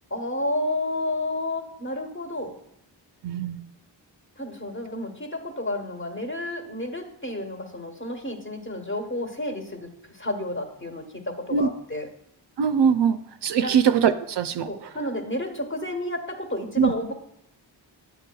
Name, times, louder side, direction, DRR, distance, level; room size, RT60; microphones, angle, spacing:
voice 1, 0.1-2.5 4.4-12.1 13.6-13.7 14.7-17.1, left 1 dB, 25° left, 4 dB, 1.2 m, -31 dB
voice 2, 3.2-3.6 11.5-11.7 12.6-14.7 16.8-16.9, right 7 dB, 65° right, 10 dB, 0.5 m, -22 dB
9.4 x 6.8 x 2.3 m, 0.75 s
cardioid pair, 60°, 45 cm